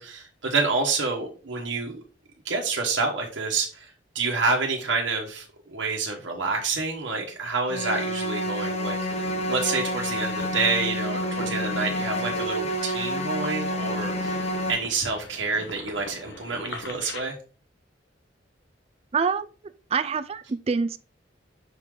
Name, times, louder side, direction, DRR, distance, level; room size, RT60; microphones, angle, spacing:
voice 1, 0.0-2.0 2.4-14.4 14.7-17.4, right 4 dB, 80° right, 1.2 m, -28 dB
sound 1, 7.7-14.7, equal, 35° left, 0.8 m, -29 dB
sound 2, 8.6-17.2, left 2 dB, 65° left, 1.2 m, -41 dB
voice 2, 19.1-19.5 19.9-21.0, right 5 dB, 35° right, 0.4 m, -25 dB
5.9 x 3.8 x 4.7 m
head